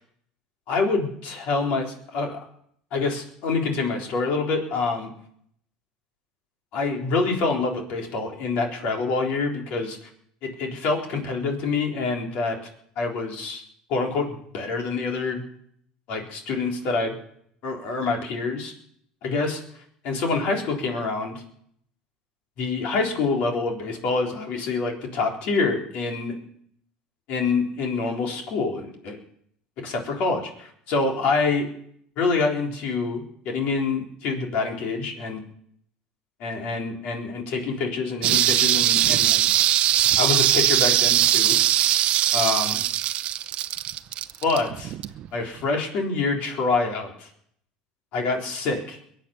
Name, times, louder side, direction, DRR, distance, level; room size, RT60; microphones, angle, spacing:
voice 1, 0.7-2.4 2.9-5.1 6.7-10.0 10.4-12.6 13.0-13.6 13.9-15.5 16.1-17.2 17.6-18.7 19.2-19.6 20.0-21.4 22.6-26.3 27.3-29.2 29.8-31.7 32.2-35.5 36.4-39.5 40.2-41.6 42.3-42.8 44.4-44.9 45.3-47.3 48.1-49.0, left 4 dB, 60° left, 1 dB, 3.9 m, -26 dB
sound 1, 38.2-45.3 45.6-45.7, right 12 dB, 50° right, 0.7 m, -21 dB
22.0 x 8.7 x 6.8 m, 0.69 s
supercardioid pair, 120°, 2 cm